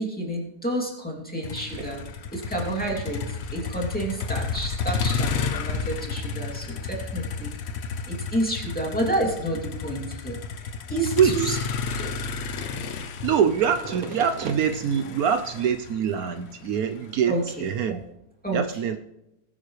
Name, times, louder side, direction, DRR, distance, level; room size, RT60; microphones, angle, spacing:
voice 1, 0.0-2.0 2.3-7.6 8.1-10.4 10.9-11.6 11.9-12.1 12.8-12.9 17.3-17.7 18.4-18.6, right 1 dB, 5° left, -2 dB, 2.6 m, -29 dB
Motor vehicle (road), 1.4-17.5, left 5 dB, 50° left, 0.9 m, -32 dB
voice 2, 11.2-11.5 13.2-18.0 18.5-19.0, right 7 dB, 70° right, 9 dB, 1.1 m, -24 dB
20.0 x 9.2 x 3.2 m, 0.89 s
omnidirectional pair, 1.7 m